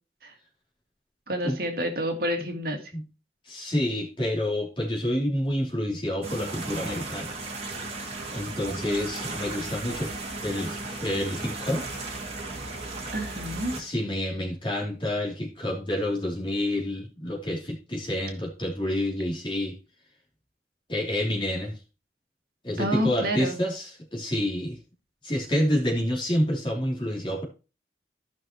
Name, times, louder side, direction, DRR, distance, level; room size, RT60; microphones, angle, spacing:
voice 1, 1.3-2.8 13.1-13.7 22.8-23.6, equal, 55° right, 2.0 m, -28 dB
voice 2, 3.5-7.4 8.3-11.9 13.8-19.8 20.9-21.7 22.6-24.8 25.2-27.4, left 1 dB, 30° left, 3.0 m, -28 dB
sound 1, 6.2-13.8, right 2 dB, 35° right, 2.4 m, -35 dB
14.5 x 6.0 x 3.0 m
head